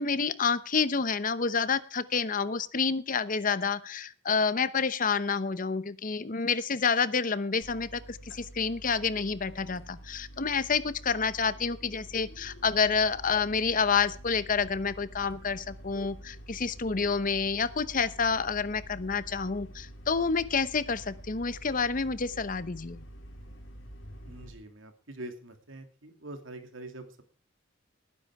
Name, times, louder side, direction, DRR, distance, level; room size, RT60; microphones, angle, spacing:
voice 1, 0.0-23.0, left 5 dB, 45° left, 15 dB, 0.9 m, -29 dB
sound 1, 7.6-24.5, equal, 75° left, 4.5 m, -47 dB
voice 2, 24.3-27.2, right 1 dB, 85° right, 6 dB, 2.9 m, -44 dB
18.5 x 10.0 x 4.8 m, 0.36 s
head